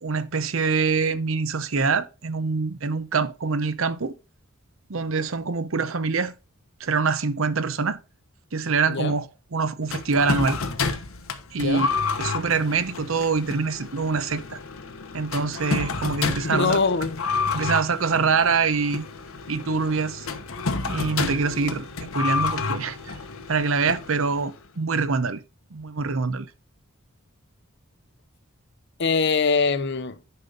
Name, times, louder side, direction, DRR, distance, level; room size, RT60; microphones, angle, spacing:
voice 1, 0.0-4.1 4.9-6.3 6.8-8.0 8.5-9.3 9.5-10.6 11.5-11.9 12.2-14.6 15.1-16.8 17.5-19.0 19.5-20.3 20.9-23.0 23.5-25.4 25.7-26.5, right 4 dB, 65° right, 0.7 m, -25 dB
sound 1, 9.9-24.6, left 4 dB, 75° left, 1.1 m, -30 dB
voice 2, 16.4-17.2 29.0-30.2, left 4 dB, 55° left, 0.8 m, -23 dB
9.9 x 5.3 x 3.9 m
head